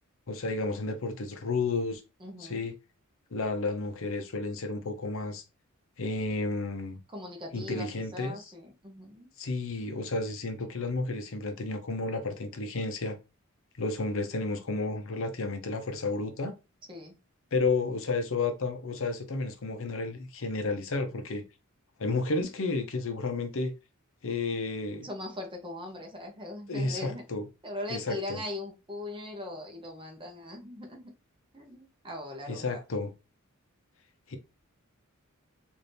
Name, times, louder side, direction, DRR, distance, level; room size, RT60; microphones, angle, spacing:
voice 1, 0.3-2.0 2.4-2.7 3.3-5.4 6.0-7.0 7.5-8.4 9.4-13.2 13.8-16.5 17.5-21.4 22.0-23.7 24.2-25.1 26.7-27.5 27.9-28.4 32.5-33.1 34.3-34.4, left 3 dB, 65° left, 0.7 m, -32 dB
voice 2, 2.2-2.6 7.1-9.3 16.9-17.2 25.0-27.2 27.6-31.1 31.5-32.8, left 2 dB, 25° right, 1.0 m, -40 dB
4.0 x 2.6 x 3.3 m
head